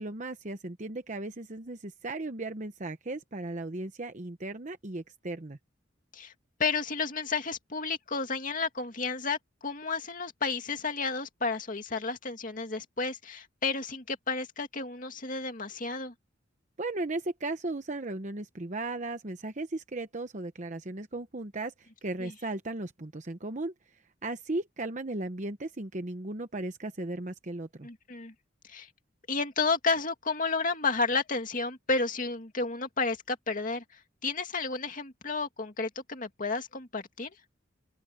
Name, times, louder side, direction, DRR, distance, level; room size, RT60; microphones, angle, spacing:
voice 1, 0.0-5.6 16.8-21.7 22.0-23.7 24.2-27.9, right 2 dB, 40° right, 0.9 m, -36 dB
voice 2, 6.6-16.1 22.2-22.3 27.8-28.3 28.7-28.9 29.3-33.8 34.2-37.3, left 4 dB, 45° left, 2.4 m, -31 dB
open air
head